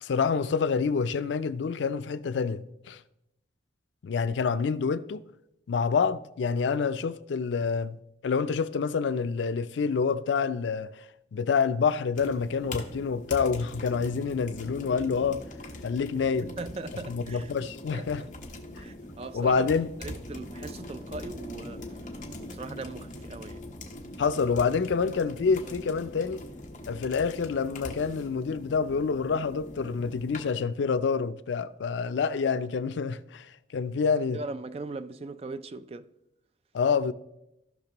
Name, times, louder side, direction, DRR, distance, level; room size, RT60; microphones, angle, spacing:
voice 1, 0.0-3.0 4.0-5.2 5.7-8.0 8.2-10.9 11.3-15.4 15.8-16.5 17.1-18.2 19.3-19.9 24.2-26.4 26.9-33.5 33.7-34.4 36.7-37.1, left 5 dB, 85° left, 0.4 m, -27 dB
sound 1, 12.1-30.5, left 1 dB, 45° left, 1.1 m, -42 dB
voice 2, 16.4-17.5 17.9-19.6 20.0-23.7 34.3-36.1, right 3 dB, 35° right, 0.3 m, -40 dB
15.5 x 5.9 x 2.9 m
head